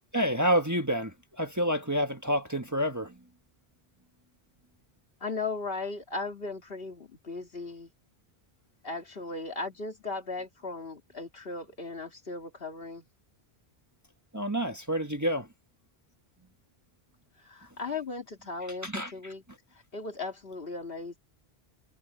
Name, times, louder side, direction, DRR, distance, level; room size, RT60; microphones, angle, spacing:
voice 1, 0.1-3.1 14.3-15.5 18.8-19.3, equal, 15° right, 1.3 m, -28 dB
voice 2, 5.2-7.9 8.8-13.1 17.4-19.4 19.9-21.2, left 3 dB, 65° left, 2.5 m, -37 dB
omnidirectional pair, 1.0 m